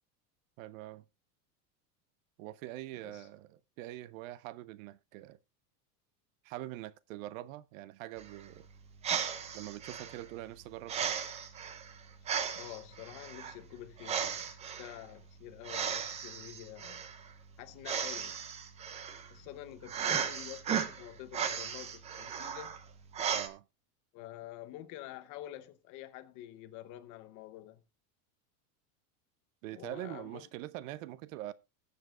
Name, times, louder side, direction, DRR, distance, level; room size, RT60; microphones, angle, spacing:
voice 1, 0.6-1.0 2.4-5.4 6.4-8.7 9.5-11.1 23.3-23.6 29.6-31.5, right 15 dB, 55° right, 0.6 m, -44 dB
sound 1, 8.2-23.5, right 7 dB, 15° right, 0.5 m, -37 dB
voice 2, 12.6-14.5 14.8-17.0 17.6-18.4 19.3-22.7 24.1-27.8 29.7-30.5, left 13 dB, 40° left, 0.9 m, -48 dB
21.0 x 7.1 x 2.4 m
supercardioid pair, 155°, 47 cm